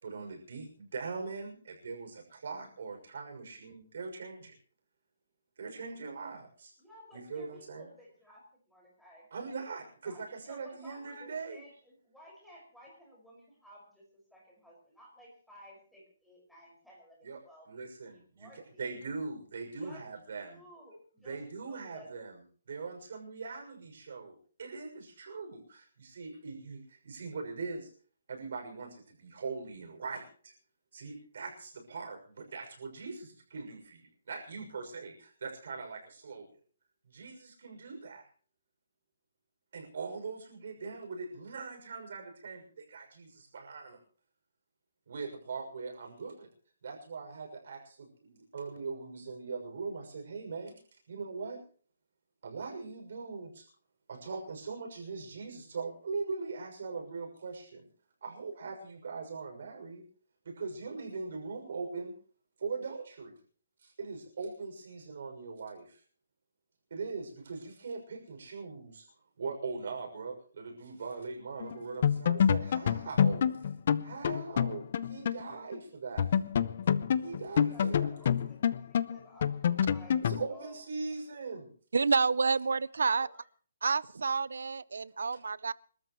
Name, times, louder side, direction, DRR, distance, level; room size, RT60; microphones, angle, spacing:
voice 1, 0.0-4.6 5.6-6.7 7.1-7.9 9.3-11.6 17.2-17.4 17.7-18.5 18.8-20.6 21.2-22.4 22.7-27.9 28.3-30.5 30.9-36.5 37.1-38.3 39.7-44.0 45.1-46.5 46.8-51.6 52.4-53.7 54.1-57.9 58.2-60.0 60.4-62.1 62.6-63.3 63.8-66.0 66.9-69.1 69.4-73.5 74.0-76.3 77.2-78.1 80.2-81.7 85.3-85.4, right 4 dB, 55° right, 6.3 m, -41 dB
voice 2, 6.8-9.5 10.0-14.0 14.3-19.0 19.8-20.0 20.4-22.1 77.5-80.8 83.1-83.5, equal, ahead, 5.6 m, -55 dB
sound 1, 71.6-71.8 72.0-75.5 75.7-75.8 76.2-80.5, left 8 dB, 40° left, 0.7 m, -27 dB
voice 3, 81.9-83.3 83.8-85.7, right 4 dB, 85° right, 0.6 m, -29 dB
28.5 x 13.5 x 3.1 m
hypercardioid pair, 170°, 0 cm